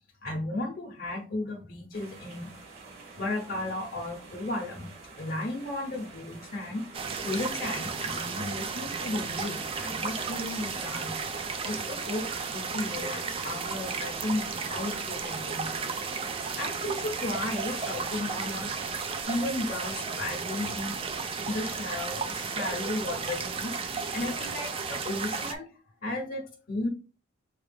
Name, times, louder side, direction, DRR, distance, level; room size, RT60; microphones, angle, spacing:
voice 1, 0.2-2.5 3.2-6.9 7.2-11.4 11.6-15.9 16.6-21.1 21.5-23.8 24.1-26.9, left 2 dB, 45° left, 0.6 m, -34 dB
sound 1, 1.9-19.2, right 3 dB, 50° right, 1.5 m, -49 dB
sound 2, 6.9-25.5, right 5 dB, 25° right, 0.3 m, -34 dB
4.7 x 2.3 x 3.3 m
head